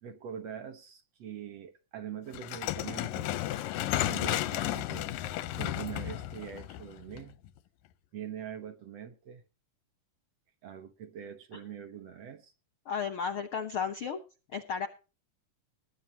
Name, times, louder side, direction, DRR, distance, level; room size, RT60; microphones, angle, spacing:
voice 1, 0.0-3.4 4.0-5.1 5.5-7.4 8.1-9.4 10.6-12.5, right 9 dB, 60° right, 1.9 m, -43 dB
sound 1, 2.3-7.5, left 14 dB, 85° left, 2.4 m, -33 dB
voice 2, 12.8-14.2 14.5-14.9, left 6 dB, 70° left, 1.3 m, -33 dB
20.5 x 10.0 x 2.9 m
omnidirectional pair, 3.8 m